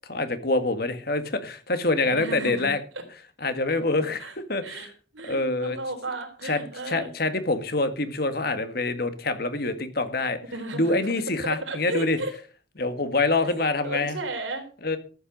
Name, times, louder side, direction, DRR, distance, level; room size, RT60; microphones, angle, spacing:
voice 1, 0.1-2.8 3.4-4.9 5.2-5.8 6.4-6.6 6.9-10.4 10.7-12.2 12.8-14.2 14.8-15.0, left 2 dB, 55° left, 1.8 m, -26 dB
voice 2, 2.0-2.7 2.9-3.0 4.2-4.3 4.6-4.9 5.1-7.1 10.5-10.9 11.5-12.3 13.4-13.5 13.8-14.6, right 2 dB, 85° right, 3.8 m, -34 dB
14.0 x 9.1 x 5.3 m
head